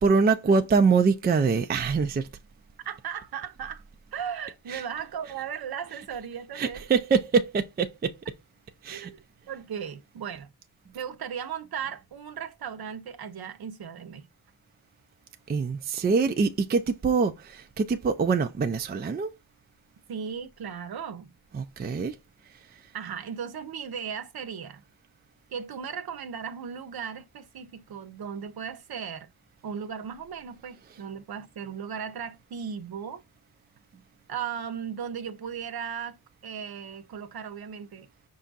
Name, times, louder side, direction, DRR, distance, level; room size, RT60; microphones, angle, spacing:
voice 1, 0.0-2.3 4.7-4.8 6.5-8.1 8.8-9.1 15.5-19.3 21.5-22.1, right 5 dB, 20° right, 0.4 m, -24 dB
voice 2, 2.8-3.8 4.1-6.9 8.9-9.2 9.5-10.5 10.9-14.3 20.1-21.3 22.9-24.8 25.5-29.3 29.6-33.2 34.3-38.1, right 7 dB, 55° right, 0.8 m, -36 dB
5.5 x 2.4 x 3.9 m
cardioid pair, 100°, 45 cm